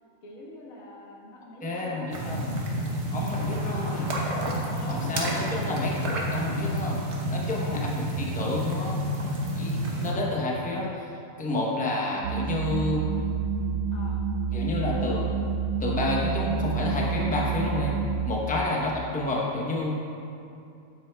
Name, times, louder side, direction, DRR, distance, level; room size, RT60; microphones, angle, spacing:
voice 1, 0.2-2.9 3.3-3.8 4.7-5.9 7.7-7.9 9.9-10.3 13.9-14.2 18.5-18.7, equal, 85° left, -3 dB, 1.6 m, -44 dB
voice 2, 1.6-2.5 3.1-4.1 4.9-7.0 7.3-9.0 9.5-11.1 11.4-13.0 14.5-15.3 15.8-17.9 18.3-19.9, left 2 dB, 10° left, -3 dB, 0.6 m, -30 dB
sound 1, 2.1-10.1, equal, 55° right, 1.2 m, -29 dB
sound 2, 12.2-18.3, right 5 dB, 85° right, 1.1 m, -28 dB
8.9 x 7.9 x 2.3 m, 2.6 s
omnidirectional pair, 1.5 m